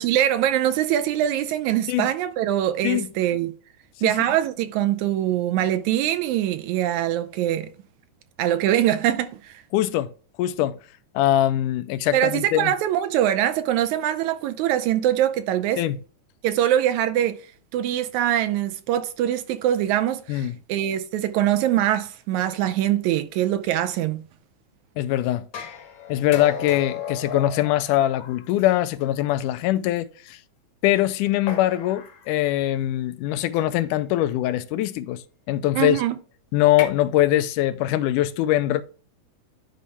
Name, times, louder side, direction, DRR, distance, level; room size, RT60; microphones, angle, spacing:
voice 1, 0.0-3.5 4.0-7.7 8.4-9.6 12.1-15.8 16.4-17.4 17.7-24.2 35.8-36.2, right 12 dB, 75° right, 1.9 m, -23 dB
voice 2, 9.7-10.1 10.4-10.8 11.1-12.7 15.8-16.0 20.3-20.6 25.0-25.5 26.1-30.4 30.8-35.2 35.5-36.0 36.5-38.8, left 13 dB, 85° left, 2.1 m, -22 dB
sound 1, 25.5-29.0 30.0-30.1 31.5-32.3 33.5-33.9 36.6-36.9, left 7 dB, 60° left, 1.4 m, -35 dB
10.5 x 4.1 x 3.4 m
omnidirectional pair, 3.6 m